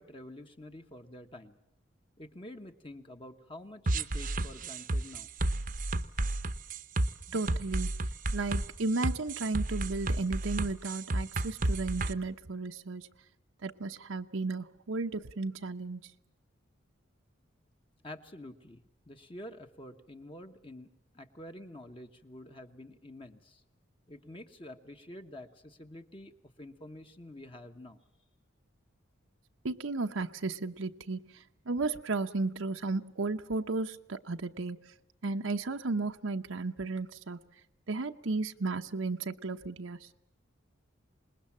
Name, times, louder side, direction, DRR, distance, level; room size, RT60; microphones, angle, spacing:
voice 1, 0.0-1.6 2.2-5.3 18.0-18.8 19.1-23.6 24.1-26.3 26.6-28.0, left 1 dB, 25° left, 5 dB, 1.1 m, -48 dB
sound 1, 3.9-12.1, right 2 dB, 40° right, 0.8 m, -31 dB
voice 2, 7.3-7.9 8.3-13.1 13.6-16.0 29.6-31.2 31.7-34.8 35.2-37.4 37.9-40.0, right 3 dB, 80° right, 6 dB, 0.9 m, -34 dB
26.5 x 20.5 x 7.4 m, 0.83 s
head